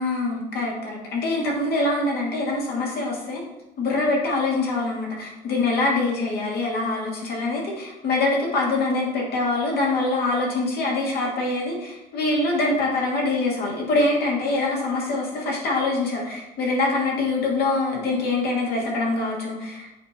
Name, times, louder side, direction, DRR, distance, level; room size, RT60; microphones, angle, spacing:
voice 1, 0.0-3.4 3.8-19.9, left 2 dB, 70° left, -2 dB, 2.2 m, -24 dB
8.2 x 3.6 x 4.4 m, 0.94 s
cardioid pair, 110°, 17 cm